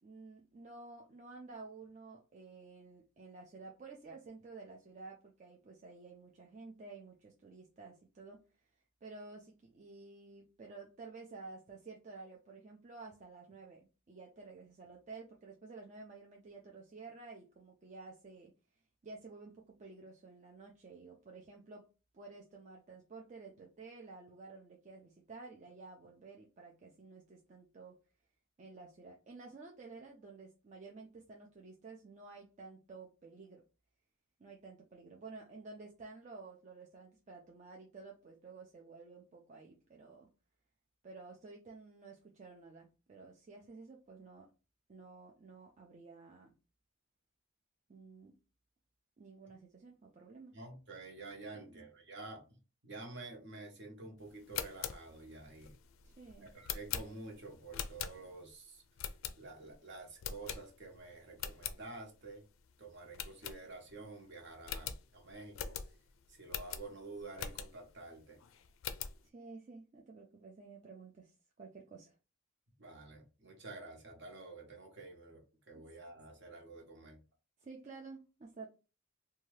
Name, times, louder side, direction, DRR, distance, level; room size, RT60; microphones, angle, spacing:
voice 1, 0.0-8.4 9.0-18.5 19.0-21.9 22.1-27.9 28.6-33.6 34.4-40.3 41.0-44.5 44.9-46.5 47.9-48.3 49.2-50.6 51.5-51.9 56.0-56.5 69.2-72.1 77.6-78.7, right 3 dB, 35° right, 0.4 m, -52 dB
voice 2, 50.5-52.6 52.8-55.8 56.4-58.8 59.4-62.4 62.8-65.8 66.3-68.4 72.8-77.2, right 3 dB, 55° right, 0.9 m, -49 dB
sound 1, 54.4-58.5 59.0-59.7 60.2-61.0 61.3-61.8 62.2-62.3 62.6-62.7 63.1-64.0 64.3-64.4 64.6-67.9 68.4-69.2, left 8 dB, 75° left, 0.3 m, -42 dB
2.7 x 2.3 x 3.1 m
head